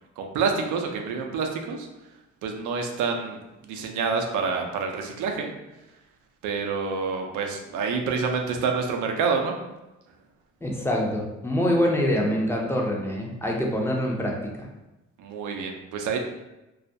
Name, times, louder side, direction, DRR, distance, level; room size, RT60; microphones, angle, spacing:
voice 1, 0.2-1.9 2.4-5.5 6.4-9.5 15.2-16.2, right 5 dB, 80° right, 3 dB, 0.5 m, -27 dB
voice 2, 10.6-14.5, equal, 10° left, -1 dB, 0.5 m, -25 dB
2.3 x 2.1 x 2.6 m, 0.98 s
cardioid pair, 90°, 30 cm